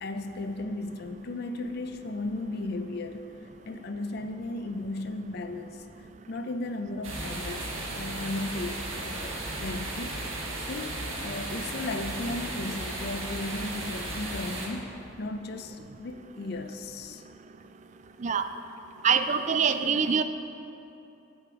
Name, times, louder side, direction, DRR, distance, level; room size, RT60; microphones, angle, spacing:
voice 1, 0.0-3.3 3.7-5.8 6.3-10.2 10.7-17.2, left 2 dB, 50° left, 8 dB, 0.5 m, -35 dB
sound 1, 7.0-14.7, right 2 dB, 75° right, 1.6 m, -35 dB
voice 2, 19.0-20.2, right 6 dB, 35° right, 9 dB, 0.3 m, -24 dB
8.6 x 7.9 x 4.8 m, 2.8 s
head